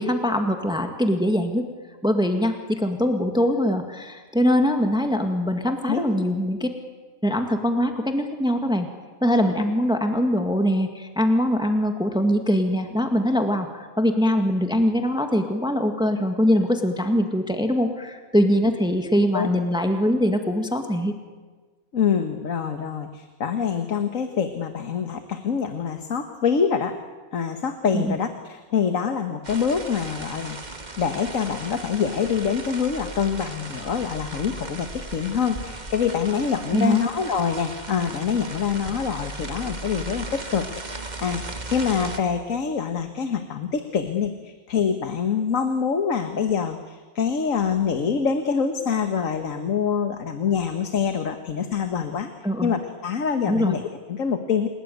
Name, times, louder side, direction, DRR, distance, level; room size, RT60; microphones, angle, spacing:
voice 1, 0.0-1.6 2.0-6.7 7.2-8.9 9.2-21.1 27.9-28.2 36.7-37.0 52.4-52.8 53.5-53.7, equal, 5° right, 5 dB, 1.9 m, -22 dB
voice 2, 21.9-27.0 27.3-30.6 31.0-52.3 52.6-54.7, left 6 dB, 70° left, 7 dB, 1.8 m, -25 dB
sound 1, 29.4-42.2, right 2 dB, 30° right, 1.9 m, -37 dB
29.5 x 18.0 x 9.4 m, 1.4 s
omnidirectional pair, 1.4 m